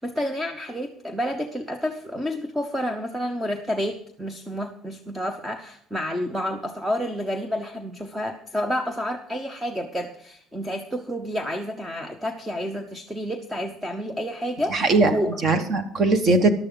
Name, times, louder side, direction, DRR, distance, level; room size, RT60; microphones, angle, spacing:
voice 1, 0.0-15.4, equal, 5° right, 7 dB, 0.8 m, -29 dB
voice 2, 14.7-16.5, right 2 dB, 35° right, 9 dB, 1.4 m, -20 dB
15.0 x 11.5 x 3.9 m, 0.64 s
cardioid pair, 165°, 0 cm